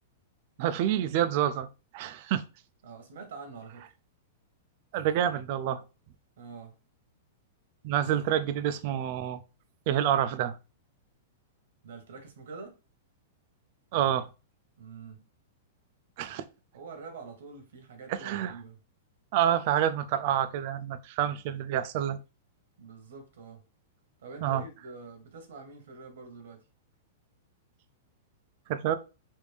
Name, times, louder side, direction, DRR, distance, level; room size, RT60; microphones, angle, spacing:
voice 1, 0.6-1.7 1.9-2.4 4.9-5.8 7.8-9.4 9.9-10.6 13.9-14.3 16.2-16.4 18.1-18.5 19.3-22.2 24.4-24.6 28.7-28.9, right 10 dB, 40° right, 0.3 m, -28 dB
voice 2, 2.8-3.9 6.4-6.8 8.2-8.3 11.8-12.8 14.8-15.3 16.7-18.8 22.8-23.6 24.2-26.7, right 4 dB, 75° right, 1.2 m, -46 dB
3.3 x 2.6 x 3.3 m
supercardioid pair, 170°, 0 cm